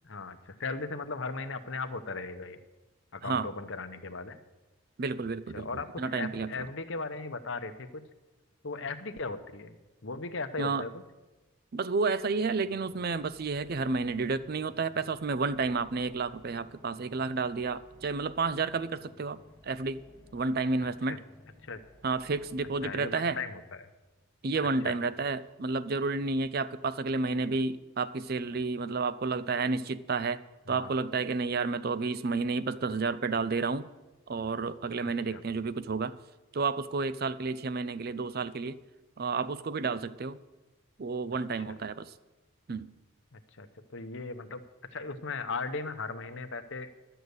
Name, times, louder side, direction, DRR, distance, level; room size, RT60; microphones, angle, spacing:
voice 1, 0.0-2.6 3.1-4.4 5.5-8.0 8.6-9.7 10.0-11.0 20.8-21.2 21.6-21.8 22.8-23.9 24.8-25.0 30.7-30.9 35.0-35.4 41.5-41.8 43.3-46.9, left 3 dB, 60° left, 9 dB, 0.8 m, -38 dB
voice 2, 5.0-6.5 10.6-10.8 11.7-19.4 19.6-20.0 20.3-21.2 22.0-23.4 24.4-30.4 30.7-33.9 34.3-36.1 36.5-38.8 39.2-40.4 41.0-42.1 42.7-42.9, right 4 dB, 45° right, 15 dB, 0.4 m, -31 dB
sound 1, 12.0-23.8, left 1 dB, 10° left, 1.4 m, -58 dB
12.5 x 6.9 x 8.0 m, 1.1 s
head